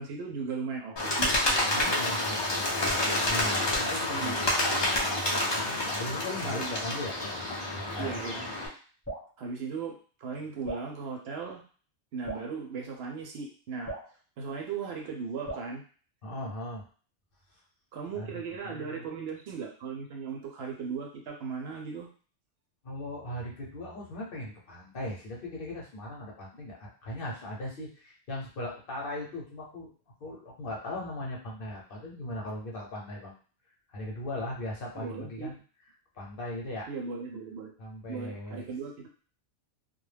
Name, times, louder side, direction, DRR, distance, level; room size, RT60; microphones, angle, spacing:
voice 1, 0.0-1.3 4.1-4.5 6.4-6.8 7.9-8.5 9.4-11.6 12.1-13.9 14.4-15.8 17.9-22.1 34.9-35.5 36.9-37.7 38.1-39.1, right 5 dB, 70° right, 1 dB, 0.8 m, -37 dB
Bird, 1.0-8.7, left 1 dB, 40° left, 0.4 m, -29 dB
voice 2, 1.7-4.6 5.5-8.2 16.2-16.8 18.1-19.1 22.8-29.9 30.2-33.4 33.9-35.6 36.1-36.9 37.8-38.7, left 1 dB, 55° left, -3 dB, 0.8 m, -39 dB
Drip, 9.0-9.3 10.6-10.9 12.2-12.5 13.8-14.1 15.5-15.7, right 2 dB, 15° left, 0.9 m, -38 dB
2.2 x 2.0 x 3.2 m, 0.41 s
omnidirectional pair, 1.2 m